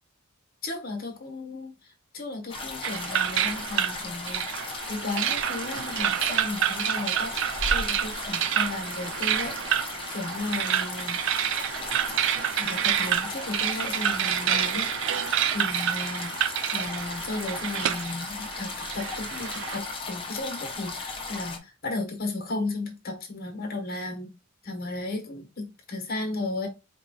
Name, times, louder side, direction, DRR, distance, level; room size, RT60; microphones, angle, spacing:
voice 1, 0.6-1.7 2.1-4.4 4.9-9.8 10.1-11.2 12.2-14.9 15.5-24.3 24.6-26.7, left 2 dB, 45° left, 1.3 m, -34 dB
sound 1, 2.5-21.6, left 3 dB, 25° left, 0.8 m, -36 dB
sound 2, 2.8-19.8, right 10 dB, 55° right, 0.3 m, -28 dB
4.6 x 2.4 x 4.1 m
head